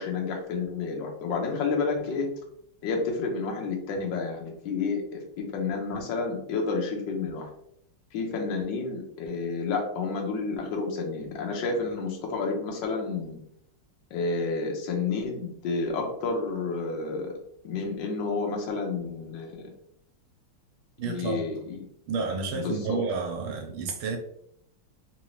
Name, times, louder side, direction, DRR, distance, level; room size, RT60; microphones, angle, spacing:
voice 1, 0.0-2.3 2.8-7.5 8.1-13.4 14.1-17.3 17.6-19.7 21.0-21.8 22.5-23.0, left 4 dB, 65° left, 1 dB, 1.4 m, -30 dB
voice 2, 21.0-21.4 22.1-24.2, right 5 dB, 75° right, 2 dB, 1.5 m, -30 dB
3.8 x 2.8 x 3.1 m, 0.70 s
omnidirectional pair, 2.4 m